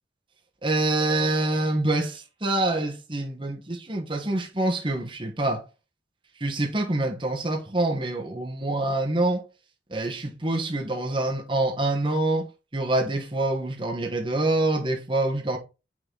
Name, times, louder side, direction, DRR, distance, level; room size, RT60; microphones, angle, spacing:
voice 1, 0.6-5.6 6.4-9.5 9.9-12.5 12.7-15.6, right 2 dB, 25° right, 1.2 m, -26 dB
6.2 x 4.0 x 3.9 m
head